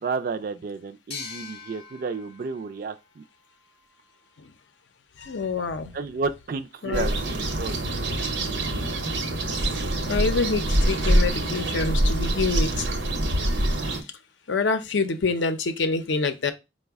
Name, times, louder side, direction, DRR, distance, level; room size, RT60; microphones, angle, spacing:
voice 1, 0.0-3.2 5.9-7.8, right 4 dB, 50° right, 0.3 m, -31 dB
sound 1, 1.1-4.5, left 5 dB, 30° left, 0.6 m, -43 dB
voice 2, 5.2-5.9 6.8-7.1 10.0-12.9 13.6-14.1 14.5-16.5, left 4 dB, 80° left, 0.5 m, -26 dB
sound 2, 6.9-14.0, right 1 dB, 85° right, 0.8 m, -25 dB
4.7 x 2.1 x 3.4 m
head